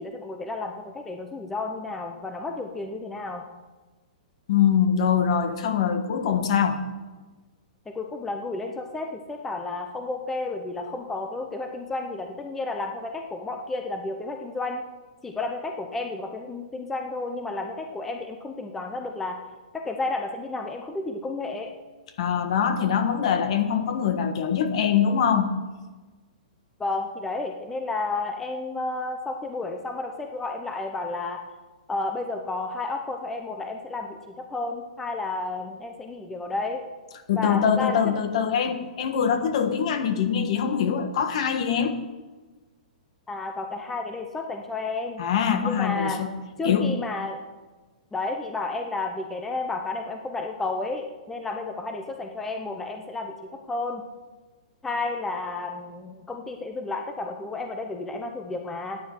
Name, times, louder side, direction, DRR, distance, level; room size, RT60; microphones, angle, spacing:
voice 1, 0.0-3.4 7.9-14.8 15.2-19.4 19.7-21.7 26.8-31.4 31.9-36.8 37.4-38.1 43.3-45.2 45.6-46.2 46.6-47.4 48.1-53.4 53.7-54.0 54.8-59.0, left 3 dB, 5° left, 4 dB, 0.6 m, -32 dB
voice 2, 4.5-6.8 22.2-25.5 37.3-42.0 45.2-46.3 46.6-47.0, left 7 dB, 50° left, 8 dB, 1.3 m, -23 dB
14.5 x 9.5 x 4.5 m, 1.3 s
hypercardioid pair, 165°, 4 cm